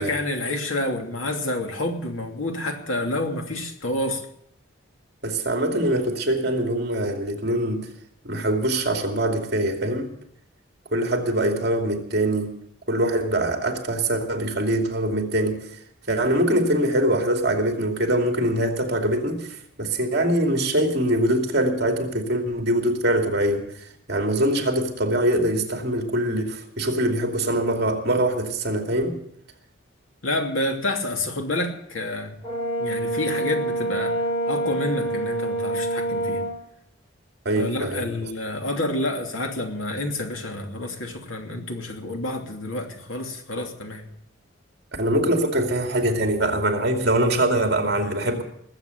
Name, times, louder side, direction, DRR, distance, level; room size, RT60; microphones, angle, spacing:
voice 1, 0.0-4.2 30.2-32.3 32.8-36.4 37.6-44.0, left 1 dB, 90° left, 3 dB, 2.8 m, -28 dB
voice 2, 5.2-7.9 8.2-10.1 10.9-12.5 12.9-15.6 16.1-23.7 24.1-29.2 37.4-38.3 45.0-48.4, right 1 dB, 55° right, 4 dB, 2.6 m, -23 dB
Brass instrument, 32.4-36.5, right 2 dB, 25° left, 5.0 m, -26 dB
20.0 x 8.1 x 7.9 m, 0.71 s
head